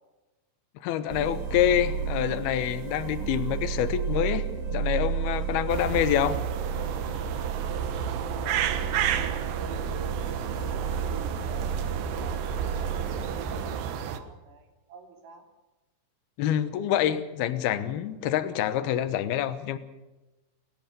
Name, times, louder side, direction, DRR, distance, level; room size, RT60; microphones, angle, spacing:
voice 1, 0.8-4.5 4.7-6.4 16.4-19.8, left 11 dB, 70° left, 12 dB, 2.5 m, -26 dB
sound 1, 1.1-13.8, right 7 dB, 45° right, 2.9 m, -32 dB
sound 2, 5.7-14.2, right 8 dB, 70° right, 3.2 m, -32 dB
voice 2, 9.1-15.5, right 5 dB, 85° right, 3 dB, 5.9 m, -50 dB
29.5 x 14.0 x 6.8 m, 1.1 s
omnidirectional pair, 5.8 m